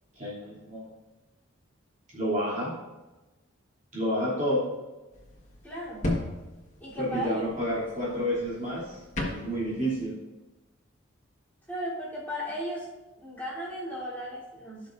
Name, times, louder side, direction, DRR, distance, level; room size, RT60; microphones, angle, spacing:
voice 1, 0.2-0.9 2.1-2.7 3.9-4.7 7.0-9.0 9.3-10.2, equal, 35° right, -8 dB, 2.8 m, -29 dB
sound 1, 5.1-10.0, left 1 dB, 35° left, 1.4 m, -37 dB
voice 2, 5.6-6.1 6.8-7.4 8.1-8.2 11.7-12.9 13.2-14.9, equal, 10° left, -10 dB, 3.3 m, -35 dB
15.5 x 6.1 x 2.6 m, 1.1 s
head